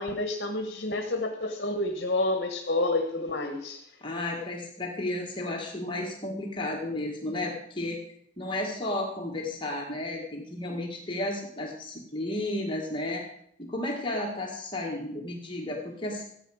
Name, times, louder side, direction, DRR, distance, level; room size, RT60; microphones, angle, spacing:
voice 1, 0.0-3.8, left 2 dB, 60° left, 5 dB, 1.3 m, -29 dB
voice 2, 4.0-8.0 8.4-13.2 13.6-16.2, left 1 dB, 25° left, 0 dB, 1.6 m, -33 dB
14.5 x 8.8 x 6.3 m, 0.71 s
head